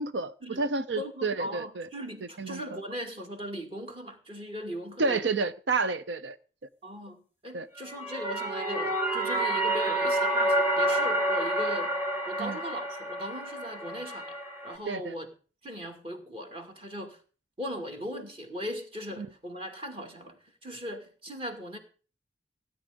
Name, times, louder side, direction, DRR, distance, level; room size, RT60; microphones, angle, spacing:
voice 1, 0.0-1.9 2.4-2.8 5.0-6.4 7.5-7.7 12.4-12.6 14.9-15.1 19.2-19.3, right 3 dB, 85° right, 0.6 m, -30 dB
voice 2, 1.0-5.3 6.8-11.9 12.3-14.4 14.6-15.3 15.6-17.2 17.6-21.8, equal, 30° right, 2.4 m, -38 dB
sound 1, 7.8-14.8, right 1 dB, 10° right, 1.5 m, -29 dB
16.5 x 9.5 x 5.1 m
head